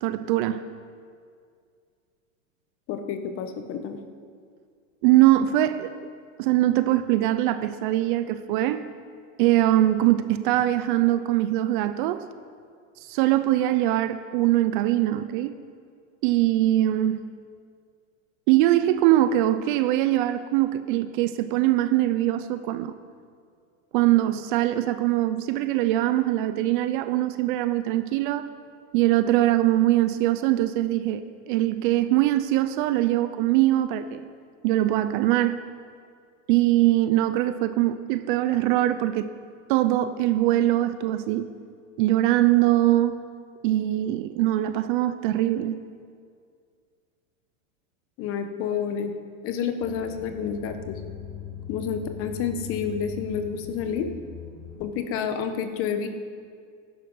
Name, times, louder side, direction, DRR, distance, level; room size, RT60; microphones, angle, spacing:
voice 1, 0.0-0.6 5.0-5.9 6.4-8.8 9.4-12.2 13.0-15.5 16.2-17.2 18.5-22.9 23.9-28.5 28.9-34.2 34.6-35.6 36.5-39.3 39.7-41.5 42.0-43.2 43.6-45.8, right 14 dB, 40° right, 12 dB, 0.5 m, -22 dB
voice 2, 2.9-4.0 48.2-49.1 49.4-51.0 51.7-54.1 54.8-56.1, left 7 dB, 35° left, 8 dB, 1.2 m, -29 dB
sound 1, 49.8-54.9, left 8 dB, 80° left, 4.8 m, -40 dB
16.0 x 11.5 x 5.5 m, 2.2 s
supercardioid pair, 150°, 41 cm